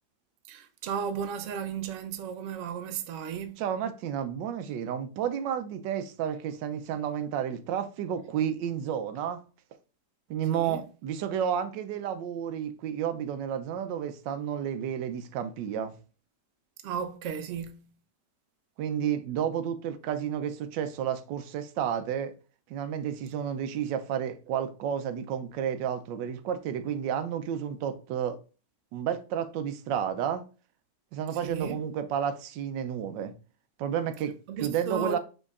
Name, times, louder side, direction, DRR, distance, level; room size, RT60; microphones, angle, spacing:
voice 1, 0.5-3.6 10.5-10.8 16.8-17.9 31.3-31.8 34.5-35.2, right 7 dB, 75° right, 0.7 m, -35 dB
voice 2, 3.6-9.4 10.3-16.0 18.8-22.3 22.7-28.4 28.9-30.5 31.1-33.3 33.8-35.2, right 9 dB, 90° right, 1.3 m, -31 dB
5.1 x 3.7 x 2.4 m
omnidirectional pair, 1.9 m